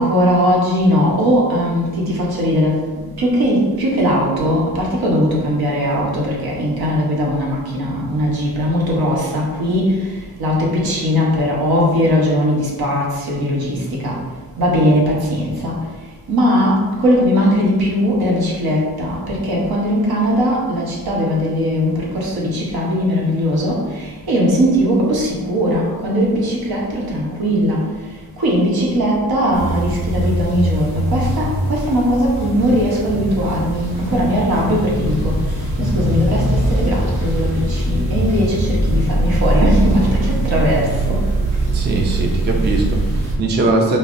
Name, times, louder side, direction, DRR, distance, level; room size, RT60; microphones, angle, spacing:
voice 1, 0.0-14.2 14.6-15.9 16.3-41.5, equal, 80° right, -3 dB, 1.0 m, -19 dB
sound 1, 29.5-43.3, right 1 dB, 65° right, 1.5 m, -21 dB
voice 2, 41.7-44.0, right 2 dB, 30° right, 1 dB, 0.4 m, -20 dB
5.4 x 2.0 x 2.5 m, 1.3 s
wide cardioid pair, 135°, 36 cm